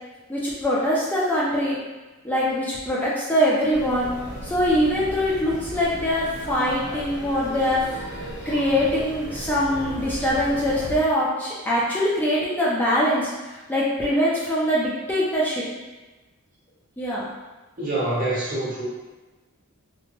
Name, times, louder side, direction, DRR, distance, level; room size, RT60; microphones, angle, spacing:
voice 1, 0.3-1.8 2.2-4.1 4.4-7.8 8.5-15.6 17.0-17.2, equal, 10° left, -7 dB, 0.4 m, -23 dB
sound 1, 3.7-11.0, equal, 80° left, 1.4 m, -36 dB
voice 2, 17.8-18.9, right 2 dB, 35° right, -7 dB, 0.8 m, -25 dB
2.9 x 2.1 x 2.8 m, 1.2 s
head